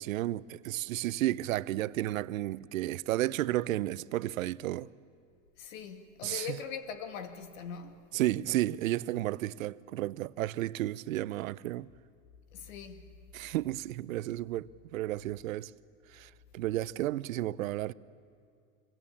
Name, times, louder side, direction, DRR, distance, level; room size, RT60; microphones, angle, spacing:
voice 1, 0.0-4.9 6.2-6.6 8.1-11.9 13.3-15.7 16.1-17.9, right 15 dB, 80° right, 0.7 m, -32 dB
voice 2, 5.6-8.2 12.5-13.1, left 7 dB, 75° left, 2.3 m, -41 dB
25.5 x 23.5 x 8.6 m
hypercardioid pair, 85°, 40 cm